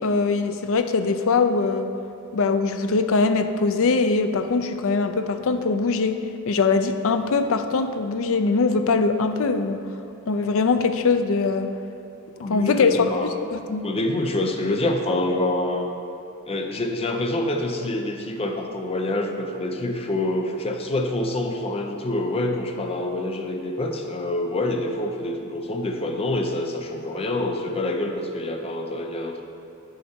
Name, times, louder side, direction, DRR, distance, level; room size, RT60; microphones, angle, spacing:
voice 1, 0.0-1.9 2.3-9.9 10.3-11.7 12.4-13.8, left 4 dB, 65° left, 9 dB, 0.5 m, -22 dB
voice 2, 12.4-13.3 13.8-15.9 16.5-29.4, left 1 dB, 25° left, 3 dB, 0.6 m, -26 dB
9.2 x 6.5 x 4.4 m, 2.8 s
head